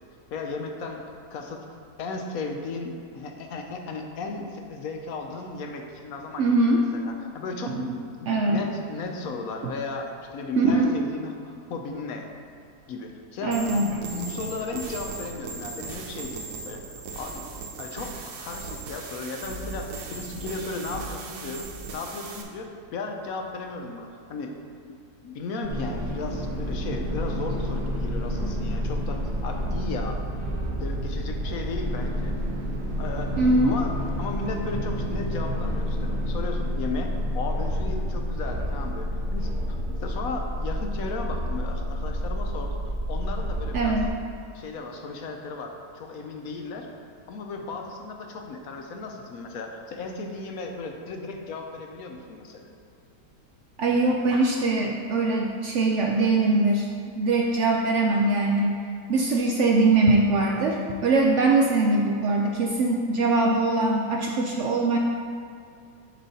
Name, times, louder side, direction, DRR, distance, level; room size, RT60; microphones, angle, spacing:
voice 1, 0.3-1.0 1.3-1.7 2.0-7.8 8.2-12.3 12.9-17.4 17.8-24.5 24.8-25.0 25.2-32.3 33.0-33.3 33.6-33.9 34.2-44.0 44.5-46.9 47.3-52.7, left 3 dB, 70° left, 3 dB, 1.0 m, -35 dB
voice 2, 6.4-6.8 7.7-7.9 8.3-8.6 9.6-9.7 10.6-11.0 13.4-13.9 33.4-33.7 43.7-44.1 53.8-56.9 57.2-58.8 59.1-65.0, right 2 dB, 70° right, 0 dB, 0.7 m, -22 dB
sound 1, 13.5-22.4, right 4 dB, 90° right, 1.4 m, -38 dB
sound 2, 25.6-44.1, equal, 45° right, 1.1 m, -29 dB
7.2 x 5.4 x 4.1 m, 2.4 s
omnidirectional pair, 1.7 m